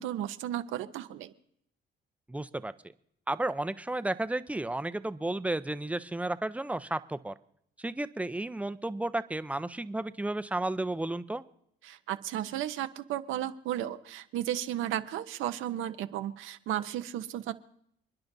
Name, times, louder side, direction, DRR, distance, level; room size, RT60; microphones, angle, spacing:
voice 1, 0.0-1.3 11.8-17.5, right 12 dB, 90° right, 9 dB, 0.8 m, -34 dB
voice 2, 2.3-2.7 3.3-7.3 7.8-11.4, right 2 dB, 5° right, 13 dB, 0.6 m, -33 dB
29.5 x 10.5 x 2.7 m, 0.73 s
cardioid pair, 90°, 20 cm